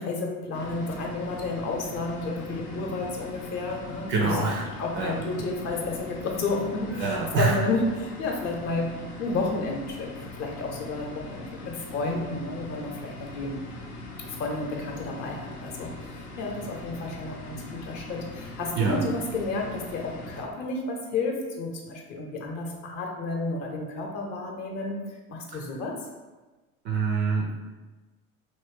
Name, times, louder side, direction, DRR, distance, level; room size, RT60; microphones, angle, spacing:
voice 1, 0.0-4.4 4.8-13.6 14.2-26.1, left 3 dB, 45° left, 0 dB, 0.8 m, -31 dB
sound 1, 0.5-20.4, left 2 dB, 80° left, 0.7 m, -41 dB
voice 2, 4.1-4.7 4.9-5.2 7.0-7.6 18.8-19.0 25.5-25.6 26.8-27.6, right 4 dB, 30° right, -1 dB, 0.3 m, -25 dB
3.0 x 2.6 x 3.3 m, 1.2 s
figure-of-eight pair, 75°, 44 cm